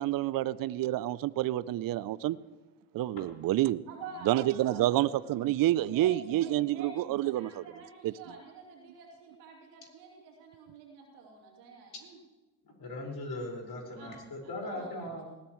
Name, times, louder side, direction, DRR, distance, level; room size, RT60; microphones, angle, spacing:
voice 1, 0.0-2.4 2.9-3.8 4.2-7.6 8.0-8.1, right 14 dB, 45° right, 19 dB, 0.5 m, -28 dB
voice 2, 3.9-5.4 5.9-12.2 14.0-14.1 14.4-15.1, right 4 dB, 85° right, -1 dB, 3.1 m, -48 dB
voice 3, 12.6-15.3, left 1 dB, 50° left, 0 dB, 5.2 m, -39 dB
19.5 x 14.0 x 3.1 m, 1.1 s
hypercardioid pair, 50°, 49 cm